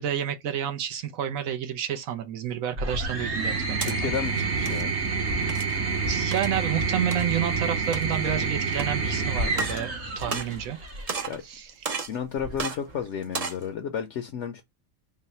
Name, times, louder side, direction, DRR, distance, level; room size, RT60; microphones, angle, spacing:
voice 1, 0.0-4.1 6.1-10.8 11.4-11.7, right 9 dB, 80° right, 1.2 m, -30 dB
sound 1, 2.8-11.2 12.4-13.0, right 4 dB, 55° right, 1.5 m, -28 dB
sound 2, 3.4-4.0 4.5-4.8 5.5-5.8 6.3-6.5 7.1-7.2 7.8-8.3 8.8-8.9 9.5-9.8 10.2-10.8 11.1-11.4 11.8-12.2 12.6-12.8 13.2-13.6, right 5 dB, 40° right, 0.6 m, -33 dB
voice 2, 3.8-4.9 10.3-10.4 11.3-11.4 12.1-14.6, left 7 dB, 65° left, 0.9 m, -32 dB
3.9 x 2.2 x 4.1 m
omnidirectional pair, 1.4 m